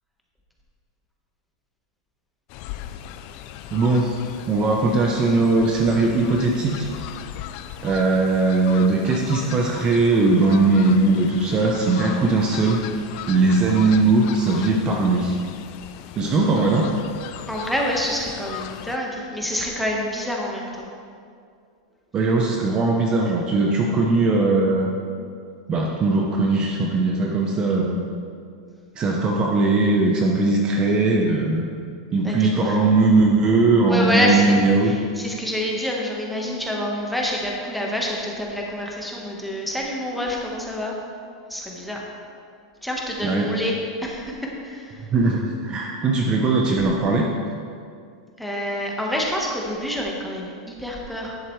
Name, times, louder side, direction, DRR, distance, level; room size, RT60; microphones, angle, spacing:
Fowl, 2.5-19.0, left 11 dB, 50° left, 0.4 m, -38 dB
voice 1, 3.7-4.2 4.5-6.9 7.8-12.8 13.3-15.4 16.1-16.9 22.1-24.9 25.7-28.0 29.0-31.7 32.1-34.9 43.2-43.5 45.1-47.3, right 3 dB, 30° right, 0 dB, 0.8 m, -19 dB
voice 2, 17.5-20.9 32.2-32.8 33.9-34.5 34.8-41.0 41.5-42.0 42.8-45.1 48.4-51.4, equal, ahead, -2 dB, 1.4 m, -27 dB
10.5 x 7.5 x 3.3 m, 2.3 s
hypercardioid pair, 125°, 3 cm